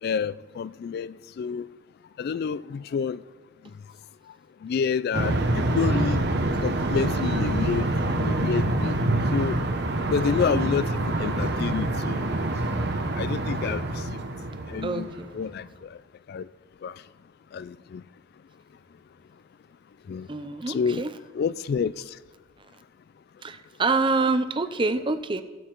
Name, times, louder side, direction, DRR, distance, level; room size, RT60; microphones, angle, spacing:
voice 1, 0.0-1.7 2.2-3.2 4.6-6.2 6.6-9.0 9.3-9.6 10.1-12.2 13.2-14.0 14.7-15.1 15.3-15.9 16.3-16.5 16.8-16.9 17.5-18.0 20.1-20.3 20.7-21.0 21.3-22.0, left 6 dB, 55° left, 0.3 m, -28 dB
sound 1, 5.1-15.4, right 2 dB, 55° right, 0.9 m, -26 dB
voice 2, 14.8-15.3 20.3-21.2 23.4-25.4, right 3 dB, 25° right, 0.5 m, -26 dB
15.5 x 8.0 x 4.5 m
head